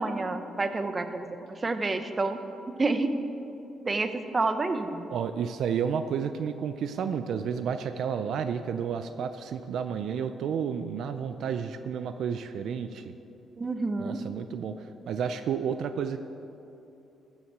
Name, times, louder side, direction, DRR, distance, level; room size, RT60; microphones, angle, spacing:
voice 1, 0.0-2.4 2.8-3.1 3.9-5.1 13.6-14.2, right 3 dB, 30° right, 9 dB, 0.9 m, -29 dB
voice 2, 5.1-13.1 14.0-16.2, right 7 dB, 70° right, 9 dB, 0.5 m, -31 dB
14.0 x 7.3 x 6.1 m, 2.8 s
cardioid pair, 90°, 0 cm